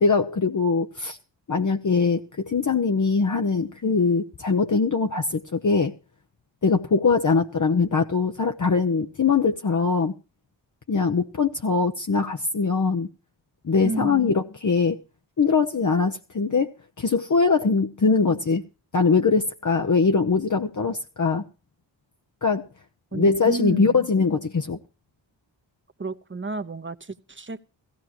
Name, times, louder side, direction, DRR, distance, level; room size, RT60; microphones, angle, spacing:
voice 1, 0.0-1.2 1.5-5.9 6.6-10.1 10.9-13.1 13.6-15.0 15.4-16.7 17.0-18.6 18.9-21.4 22.4-22.7 23.1-24.8, left 4 dB, 40° left, 0.8 m, -22 dB
voice 2, 13.8-14.3 23.1-24.0 26.0-27.7, right 3 dB, 25° right, 1.0 m, -31 dB
16.0 x 15.5 x 3.0 m
cardioid pair, 45°, 45 cm